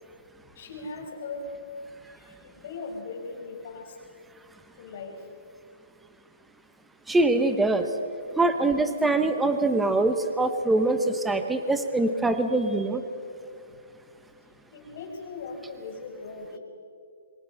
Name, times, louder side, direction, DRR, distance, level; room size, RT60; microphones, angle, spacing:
voice 1, 0.5-1.4 2.1-4.0 4.8-5.2 14.7-16.6, left 3 dB, 40° left, -1 dB, 5.5 m, -39 dB
voice 2, 7.1-7.9 8.4-13.0, right 2 dB, 5° right, 8 dB, 0.9 m, -23 dB
26.5 x 23.0 x 5.8 m, 2.4 s
hypercardioid pair, 170°, 0 cm